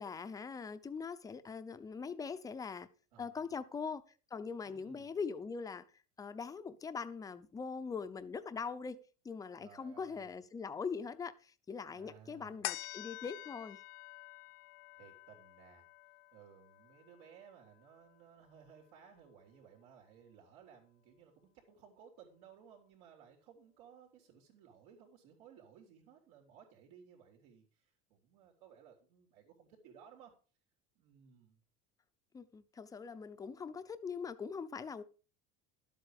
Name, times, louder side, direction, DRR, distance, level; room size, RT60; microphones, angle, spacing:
voice 1, 0.0-2.9 3.2-4.0 4.3-5.9 6.2-13.8 32.3-35.0, left 5 dB, 10° left, 0.6 m, -42 dB
voice 2, 3.1-3.6 4.6-5.2 9.6-10.3 11.9-12.7 14.9-15.9 16.3-30.3 30.9-31.6, right 8 dB, 80° right, 3.4 m, -59 dB
sound 1, 12.6-19.4 19.8-19.9, left 19 dB, 60° left, 0.8 m, -48 dB
12.0 x 8.1 x 4.9 m
cardioid pair, 165°, 29 cm